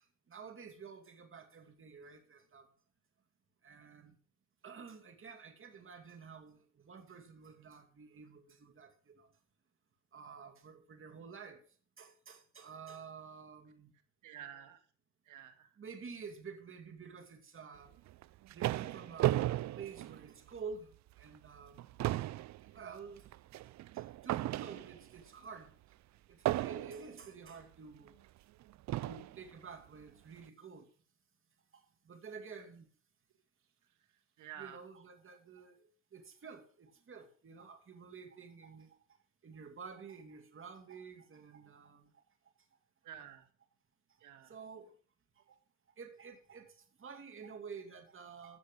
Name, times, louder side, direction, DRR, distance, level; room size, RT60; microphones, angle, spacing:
voice 1, 0.3-2.7 3.6-4.2 4.6-9.3 10.1-11.6 12.0-13.9 15.8-17.9 18.5-21.9 22.7-23.3 23.9-25.7 26.3-28.2 29.0-30.9 31.7-32.9 34.6-35.8 36.1-39.0 39.4-42.1 44.4-44.9 46.0-48.6, right 5 dB, 45° right, 2.6 m, -50 dB
voice 2, 14.2-14.8 15.3-15.7 34.4-34.8 43.0-43.4 44.2-44.6, right 10 dB, 85° right, 2.1 m, -50 dB
sound 1, 18.1-20.7 21.2-21.4 21.7-25.2 26.5-27.2 28.1-28.2 28.9-29.4, right 15 dB, 65° right, 0.5 m, -35 dB
14.0 x 7.3 x 5.4 m
cardioid pair, 90°, 30 cm